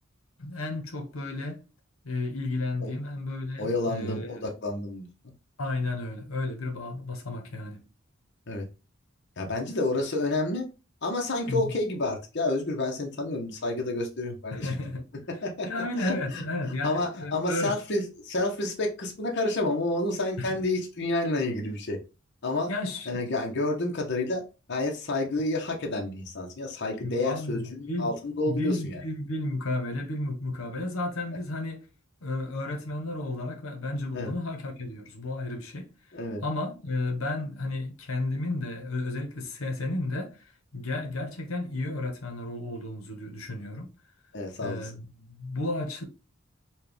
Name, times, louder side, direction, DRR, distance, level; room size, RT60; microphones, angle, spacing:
voice 1, 0.4-1.6 2.0-4.3 5.6-7.8 11.5-11.7 14.5-15.0 15.6-17.7 20.4-20.6 22.7-23.2 27.0-28.1 28.4-31.8 32.2-35.9 36.4-43.9 44.6-46.1, left 2 dB, 85° left, 0.9 m, -33 dB
voice 2, 3.6-5.1 8.5-8.7 9.4-10.7 11.0-14.7 15.4-15.7 16.0-16.4 16.8-22.0 22.4-22.7 23.1-24.4 24.7-29.0 34.1-34.3 36.1-36.4 44.3-44.9, left 2 dB, 55° left, 0.9 m, -29 dB
4.4 x 2.3 x 3.3 m
head